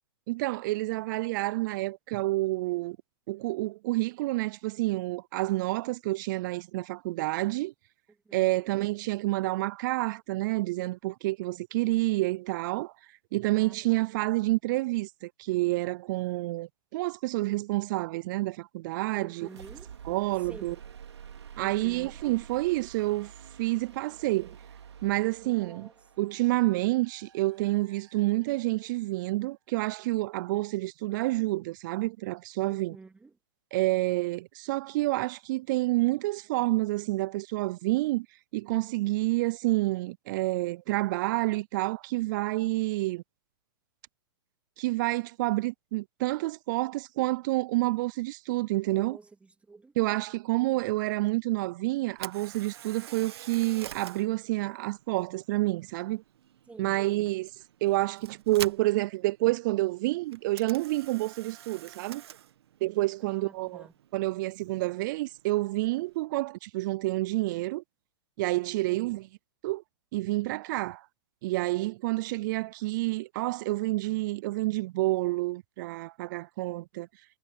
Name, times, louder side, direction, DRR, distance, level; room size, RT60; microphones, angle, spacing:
voice 1, 0.3-3.0 3.3-7.7 8.3-12.9 13.3-19.5 20.1-20.8 21.6-23.3 23.6-24.6 25.0-25.9 26.2-33.0 33.7-38.3 38.5-43.2 44.8-49.2 50.0-56.2 56.8-57.5 57.8-62.2 62.8-63.8 64.1-67.8 68.4-69.3 69.6-69.8 70.1-71.0 71.4-77.1, right 20 dB, 50° right, 0.4 m, -29 dB
voice 2, 8.1-8.7 13.5-14.0 19.1-19.9 20.4-20.8 21.6-22.2 25.4-25.9 32.7-33.3 48.9-49.9 50.5-51.0 56.7-57.3 63.2-63.9 68.9-69.2, right 4 dB, 10° right, 2.8 m, -50 dB
sound 1, 19.3-29.0, right 8 dB, 85° right, 3.7 m, -49 dB
Camera, 52.1-66.2, right 11 dB, 70° right, 1.7 m, -47 dB
hypercardioid pair, 130°, 14 cm